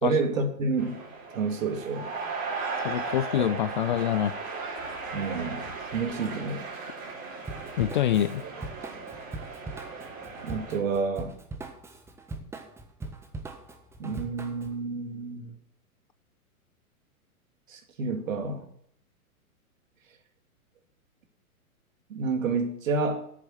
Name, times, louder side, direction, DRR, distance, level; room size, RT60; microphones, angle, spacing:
voice 1, 0.0-1.0 1.3-2.1 5.1-6.7 10.4-11.4 14.0-15.6 17.7-18.7 22.1-23.3, right 4 dB, 60° right, 5 dB, 2.4 m, -29 dB
sound 1, 0.8-10.8, right 4 dB, 35° right, 4.2 m, -37 dB
voice 2, 2.8-4.3 7.8-8.4, left 11 dB, 35° left, 14 dB, 0.4 m, -25 dB
Drum kit / Drum, 7.4-14.8, right 2 dB, 5° right, 0.8 m, -41 dB
8.8 x 7.3 x 7.8 m, 0.67 s
figure-of-eight pair, 110°, 44 cm